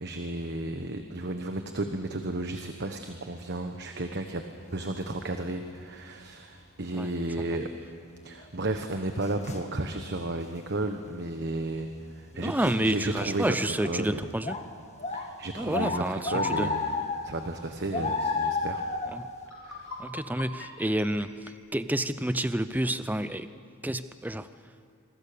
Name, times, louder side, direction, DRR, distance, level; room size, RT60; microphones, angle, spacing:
voice 1, 0.0-4.4 4.7-7.7 8.2-14.3 15.1-16.9 17.2-18.8 19.6-20.0, right 2 dB, 50° right, 6 dB, 1.2 m, -33 dB
sound 1, 5.0-5.1 8.4-8.5 9.2-9.6 10.6-10.7 12.6-12.7 13.2-13.5 13.8-13.9 14.4-14.6 15.0-15.3 15.7-17.3 17.9-19.2, left 3 dB, 30° left, 1.8 m, -31 dB
voice 2, 12.3-14.6 15.6-16.7 18.0-18.1 19.1-19.3 20.0-23.5 23.8-24.5, right 1 dB, 10° right, 12 dB, 0.6 m, -29 dB
sound 2, 19.3-22.4, left 2 dB, 75° left, 5.4 m, -44 dB
27.0 x 24.0 x 6.9 m, 2.2 s
head